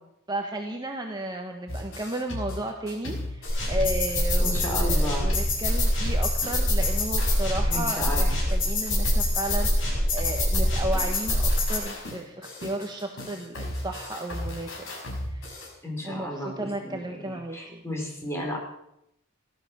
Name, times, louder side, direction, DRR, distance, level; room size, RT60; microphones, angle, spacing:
voice 1, 0.3-14.9 15.3-15.7 16.0-17.8, right 1 dB, 20° right, 3 dB, 1.3 m, -34 dB
sound 1, 1.7-9.8 10.2-15.7, left 1 dB, 85° left, 5.8 m, -36 dB
sound 2, 3.5-11.8, left 1 dB, 65° left, 7.1 m, -24 dB
voice 2, 4.4-5.3 7.7-8.3 15.8-18.6, equal, 15° left, -1 dB, 5.2 m, -33 dB
17.5 x 12.5 x 6.3 m, 0.79 s
head